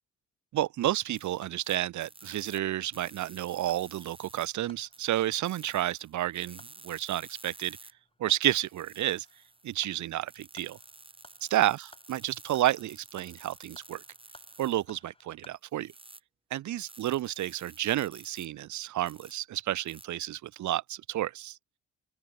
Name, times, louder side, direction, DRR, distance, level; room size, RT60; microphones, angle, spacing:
voice 1, 0.5-7.8 8.2-9.3 9.6-10.8 11.5-14.0 14.6-15.9 16.5-21.6, right 13 dB, 70° right, 1.2 m, -31 dB
sound 1, 1.0-15.6, left 3 dB, 20° left, 5.0 m, -60 dB
sound 2, 1.1-2.6 2.9-4.5 4.9-7.9 8.4-14.9 15.7-16.2 16.8-18.5 19.1-19.3 19.9-20.1, right 2 dB, 15° right, 6.2 m, -52 dB
open air
cardioid pair, 90°, 30 cm